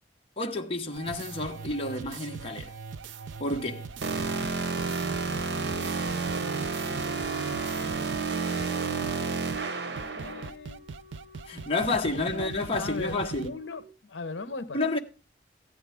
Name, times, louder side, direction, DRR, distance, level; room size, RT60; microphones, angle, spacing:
voice 1, 0.4-2.7 3.4-3.9 11.5-13.5 14.7-15.0, left 2 dB, 30° left, 1.3 m, -30 dB
sound 1, 0.9-8.3 8.6-8.7 9.0-9.2 9.5-9.6 10.0-13.5, right 5 dB, 80° right, 0.5 m, -41 dB
sound 2, 4.0-10.5, right 4 dB, 60° right, 1.0 m, -30 dB
Wind instrument woodwind instrument, 6.8-13.9, left 4 dB, 5° left, 2.6 m, -49 dB
voice 2, 9.9-10.8 12.1-13.2 13.4-15.0, left 3 dB, 75° left, 0.9 m, -39 dB
15.0 x 9.7 x 3.5 m
head